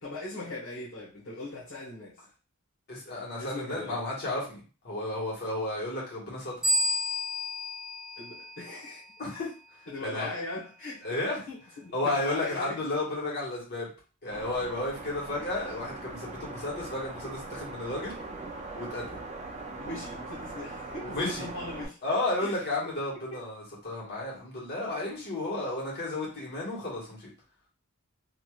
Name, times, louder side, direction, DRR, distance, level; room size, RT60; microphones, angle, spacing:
voice 1, 0.0-2.2 3.4-4.0 8.2-9.0 9.9-11.0 11.5-12.8 19.8-22.0 22.4-22.5 23.3-23.4, left 2 dB, 70° left, 1.0 m, -39 dB
voice 2, 2.9-6.5 9.2-9.5 10.0-10.3 11.0-11.4 11.9-13.9 14.2-18.2 18.7-19.2 21.0-21.5 22.0-27.3, left 2 dB, 50° left, 1.5 m, -33 dB
sound 1, 6.6-9.1, equal, ahead, 1.0 m, -31 dB
sound 2, 14.3-21.9, right 3 dB, 30° right, 0.4 m, -41 dB
3.0 x 2.8 x 2.4 m
head